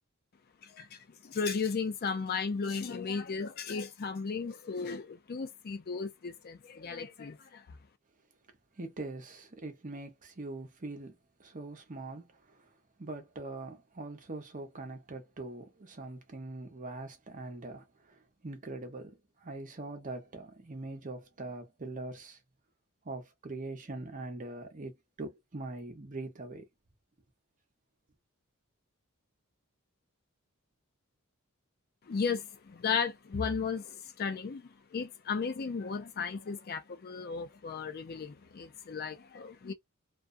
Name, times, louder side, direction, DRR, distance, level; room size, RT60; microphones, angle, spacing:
voice 1, 0.6-7.6 32.1-39.7, left 5 dB, 45° left, 0.4 m, -35 dB
voice 2, 8.8-12.7 13.0-22.4 23.0-26.7, right 2 dB, 35° right, 0.7 m, -42 dB
2.4 x 2.2 x 2.5 m
head